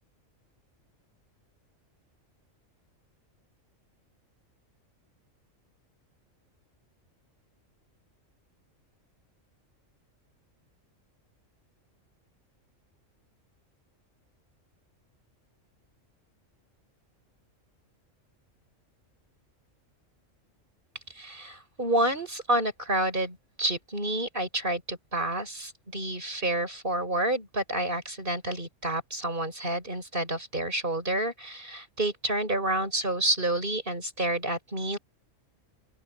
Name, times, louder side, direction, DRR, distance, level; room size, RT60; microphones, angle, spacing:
voice 1, 21.1-35.0, right 1 dB, 40° right, 6.2 m, -29 dB
open air
omnidirectional pair, 1.4 m